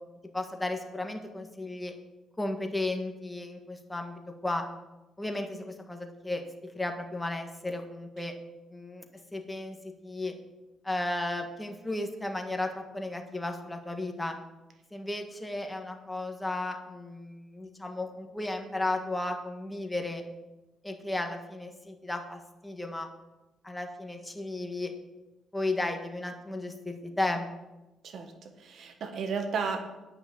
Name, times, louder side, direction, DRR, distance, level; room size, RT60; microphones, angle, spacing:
voice 1, 0.3-1.9 2.4-4.6 5.2-8.3 8.7-9.0 9.3-10.4 10.8-14.4 14.9-20.2 20.8-23.1 23.6-24.9 25.5-27.5, left 2 dB, 10° left, 4 dB, 1.6 m, -34 dB
voice 2, 28.0-29.8, right 5 dB, 65° right, 6 dB, 1.6 m, -33 dB
9.6 x 5.9 x 8.2 m, 1.1 s
cardioid pair, 90°, 0 cm